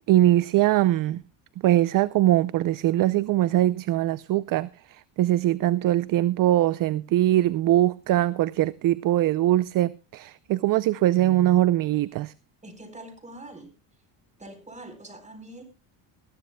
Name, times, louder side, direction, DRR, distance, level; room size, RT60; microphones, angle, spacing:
voice 1, 0.1-1.2 1.6-12.3, right 14 dB, 45° right, 0.6 m, -22 dB
voice 2, 12.6-13.7 14.4-15.6, right 1 dB, 15° right, 4.1 m, -43 dB
19.5 x 15.0 x 2.2 m
cardioid pair, 125°, 45 cm